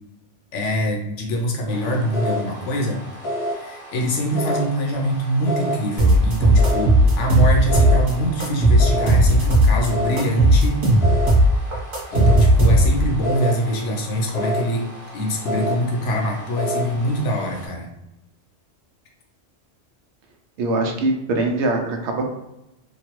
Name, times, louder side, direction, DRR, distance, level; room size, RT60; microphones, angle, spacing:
voice 1, 0.5-3.0 3.3-10.8 11.2-11.6 12.1-17.9, equal, 75° left, 1 dB, 1.0 m, -24 dB
sound 1, 1.7-17.7, equal, 45° left, 0.4 m, -31 dB
sound 2, 6.0-8.1 8.4-9.9 10.2-13.1, right 1 dB, 40° right, 1.1 m, -15 dB
voice 2, 20.6-22.3, right 2 dB, 70° right, 2 dB, 0.8 m, -22 dB
3.1 x 2.2 x 2.9 m, 0.91 s
omnidirectional pair, 1.3 m